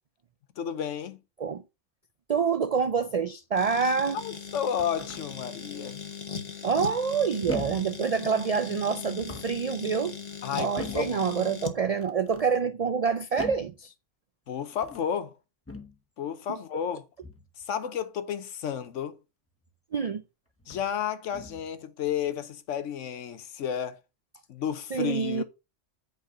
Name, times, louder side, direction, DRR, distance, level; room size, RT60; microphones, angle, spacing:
voice 1, 0.6-1.2 4.1-6.1 10.4-11.2 14.5-15.3 16.2-17.0 17.6-19.2 20.7-24.0 24.5-25.4, left 8 dB, 80° left, 1.1 m, -32 dB
voice 2, 2.3-4.2 6.6-10.2 10.6-13.9 16.5-16.6 19.9-20.2 24.9-25.4, right 6 dB, 70° right, 0.3 m, -27 dB
sound 1, 3.6-11.8, left 6 dB, 35° left, 1.1 m, -39 dB
sound 2, 4.5-5.2 6.7-7.1 7.5-8.0 9.1-9.7 10.8-11.2 12.0-12.5 13.4-13.8 14.7-15.1 15.7-16.0 17.2-17.5 19.6-19.7 20.6-20.9 21.3-21.7, left 2 dB, 15° left, 0.8 m, -41 dB
8.3 x 4.2 x 5.0 m
omnidirectional pair, 1.3 m